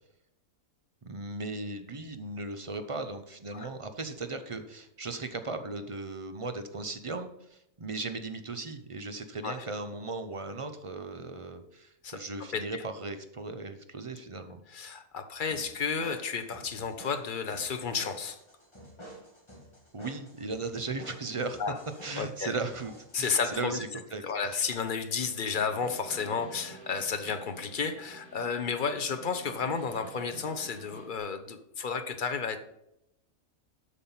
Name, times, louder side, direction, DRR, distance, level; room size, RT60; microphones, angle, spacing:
voice 1, 1.0-14.6 19.9-21.6 22.0-24.2, right 3 dB, 40° right, 8 dB, 0.5 m, -37 dB
voice 2, 12.5-12.8 14.7-18.4 21.6-21.8 22.2-22.5 23.1-23.8 24.2-32.6, left 5 dB, 45° left, 8 dB, 0.7 m, -32 dB
sound 1, 15.4-23.4, equal, 20° left, 2.0 m, -51 dB
Snare drum, 25.1-31.2, right 1 dB, 80° right, 4.6 m, -49 dB
8.3 x 5.9 x 5.5 m, 0.82 s
omnidirectional pair, 1.5 m